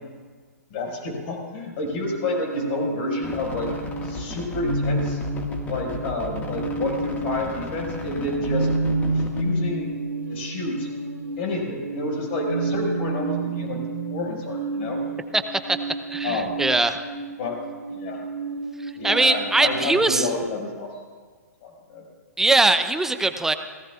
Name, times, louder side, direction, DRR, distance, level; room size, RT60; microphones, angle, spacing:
voice 1, 0.7-3.7 4.0-5.2 5.7-8.7 9.0-9.9 10.3-10.9 11.4-13.8 14.1-15.0 16.2-16.6 17.4-17.6 17.9-18.2 19.0-20.9 21.6-22.0, left 2 dB, 40° left, 0 dB, 5.7 m, -29 dB
sound 1, 2.1-19.8, right 3 dB, 80° right, 2.0 m, -30 dB
sound 2, 3.2-9.4, left 2 dB, 15° left, 1.9 m, -35 dB
voice 2, 15.3-15.8 16.1-17.0 18.8-20.3 22.4-23.5, right 2 dB, 5° right, 9 dB, 0.7 m, -21 dB
29.0 x 17.5 x 2.5 m, 1.5 s
figure-of-eight pair, 115°, 9 cm